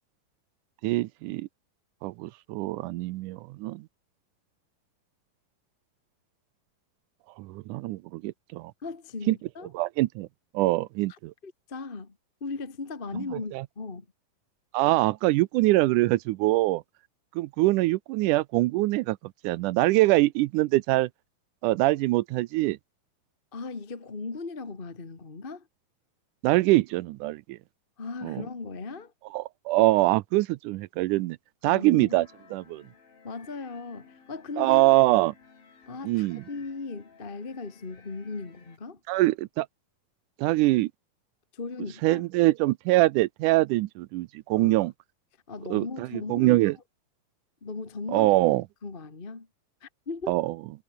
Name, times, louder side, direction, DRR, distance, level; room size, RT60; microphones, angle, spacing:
voice 1, 0.8-1.5 2.0-3.9 7.4-8.7 9.3-9.4 9.7-10.3 10.5-11.3 13.5-13.6 14.7-16.8 17.4-21.1 21.6-22.8 26.4-27.6 28.2-28.4 29.3-31.4 31.6-32.3 32.5-32.8 34.6-35.3 36.0-36.4 39.1-39.7 40.4-40.9 42.0-44.9 45.7-46.8 48.1-48.6 50.3-50.5, right 19 dB, 85° right, 1.8 m, -24 dB
voice 2, 8.8-9.7 11.4-14.0 23.5-25.7 28.0-29.1 31.6-32.2 33.2-34.9 35.8-39.0 41.5-42.2 44.5-44.7 45.5-46.7 47.6-48.3 48.8-49.5 49.8-50.4, left 4 dB, 30° left, 0.9 m, -37 dB
sound 1, 32.1-38.8, left 5 dB, 75° left, 7.3 m, -56 dB
omnidirectional pair, 4.2 m